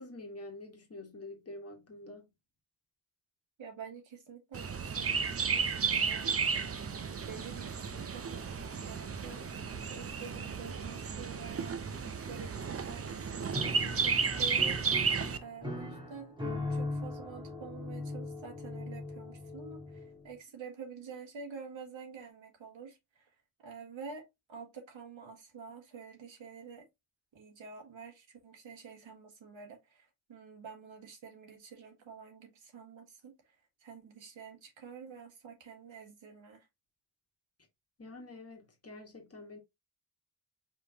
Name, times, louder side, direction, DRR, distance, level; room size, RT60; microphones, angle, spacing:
voice 1, 0.0-2.3 38.0-39.6, left 2 dB, 30° left, 1.5 m, -47 dB
voice 2, 3.6-6.3 7.0-11.8 12.3-14.8 15.4-16.4 16.7-23.3 23.6-26.9 27.3-36.7, right 5 dB, 80° right, 1.7 m, -48 dB
Chirp tweet, 4.5-15.4, right 5 dB, 30° right, 0.5 m, -33 dB
Piano, 13.5-20.3, left 1 dB, 10° right, 1.4 m, -39 dB
5.0 x 3.6 x 2.8 m
wide cardioid pair, 160°, 46 cm